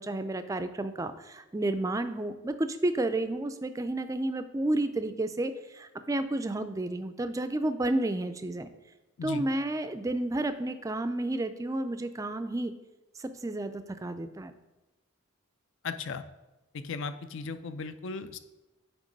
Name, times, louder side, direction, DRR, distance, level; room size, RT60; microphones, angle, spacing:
voice 1, 0.0-8.7 9.2-12.7 13.2-14.5, right 1 dB, 15° right, 10 dB, 0.3 m, -31 dB
voice 2, 15.8-16.2 16.7-18.4, left 4 dB, 60° left, 11 dB, 0.4 m, -36 dB
9.0 x 3.0 x 5.2 m, 1.0 s
head